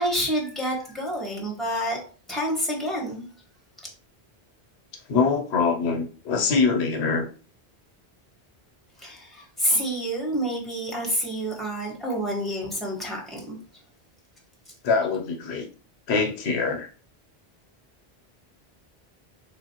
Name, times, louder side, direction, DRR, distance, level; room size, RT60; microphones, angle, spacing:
voice 1, 0.0-2.0 2.3-3.2 9.0-13.6, equal, ahead, -2 dB, 1.2 m, -28 dB
voice 2, 5.1-7.2 14.8-15.7 16.1-16.9, left 4 dB, 85° left, 4 dB, 1.0 m, -23 dB
3.8 x 3.1 x 2.8 m, 0.40 s
omnidirectional pair, 1.1 m